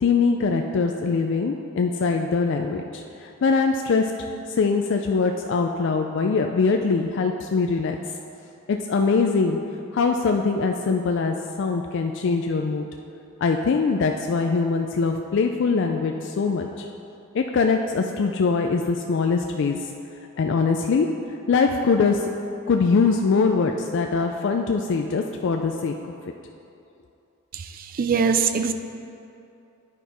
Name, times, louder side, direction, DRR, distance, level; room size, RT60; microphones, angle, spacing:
voice 1, 0.0-4.1 4.5-8.0 8.7-9.6 9.9-12.9 13.4-16.9 17.3-19.8 20.4-21.1 21.5-22.3 22.7-25.9, left 4 dB, 55° left, 4 dB, 0.3 m, -22 dB
voice 2, 27.5-28.7, right 5 dB, 40° right, 9 dB, 0.3 m, -23 dB
10.0 x 4.4 x 4.6 m, 2.7 s
head